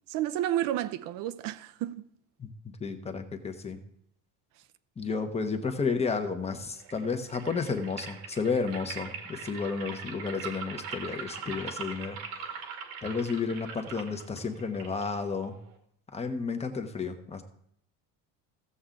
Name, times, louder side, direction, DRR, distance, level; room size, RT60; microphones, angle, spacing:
voice 1, 0.1-2.1, right 12 dB, 65° right, 0.7 m, -31 dB
voice 2, 2.4-3.8 5.0-12.2 13.0-15.6 16.1-17.4, left 5 dB, 20° left, 1.0 m, -32 dB
sound 1, 6.8-15.8, right 6 dB, 85° right, 2.0 m, -42 dB
15.5 x 7.1 x 3.8 m
cardioid pair, 135°, 35 cm